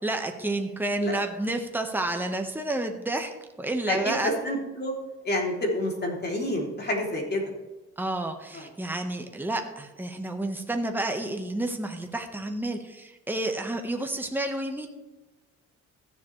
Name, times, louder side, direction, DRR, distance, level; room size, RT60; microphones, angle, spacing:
voice 1, 0.0-3.3 3.6-4.3 8.0-14.9, right 2 dB, 5° right, 4 dB, 1.3 m, -30 dB
voice 2, 3.9-4.9 5.2-7.4 8.5-8.7, left 1 dB, 35° left, 0 dB, 3.1 m, -28 dB
15.5 x 7.3 x 3.3 m, 1.1 s
cardioid pair, 90°, 30 cm